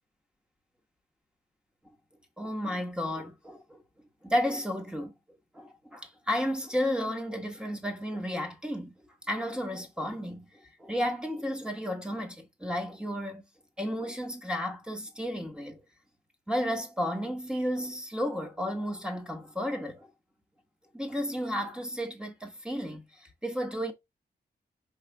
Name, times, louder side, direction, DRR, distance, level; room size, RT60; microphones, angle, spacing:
voice 1, 2.4-3.8 4.2-5.1 5.5-8.9 9.2-13.5 13.8-15.8 16.5-20.1 20.9-23.9, equal, 5° right, 1.1 m, -33 dB
4.9 x 3.2 x 3.4 m
wide cardioid pair, 105°, 17 cm